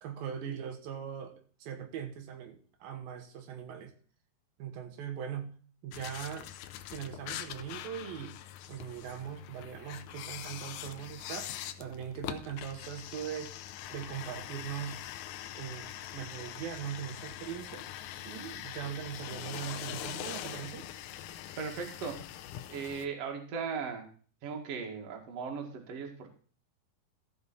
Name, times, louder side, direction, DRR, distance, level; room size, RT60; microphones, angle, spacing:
voice 1, 0.0-1.3 1.6-3.9 4.6-5.5 5.8-6.5 6.9-8.4 8.7-11.5 11.8-13.5 13.9-15.0 15.5-17.8 18.2-20.9, right 9 dB, 90° right, 4 dB, 3.1 m, -40 dB
sound 1, 5.9-23.1, left 12 dB, 80° left, 1.8 m, -43 dB
voice 2, 21.6-22.2 22.7-24.1 24.4-26.3, right 5 dB, 50° right, 2 dB, 2.5 m, -37 dB
14.5 x 5.6 x 4.1 m, 0.42 s
omnidirectional pair, 4.1 m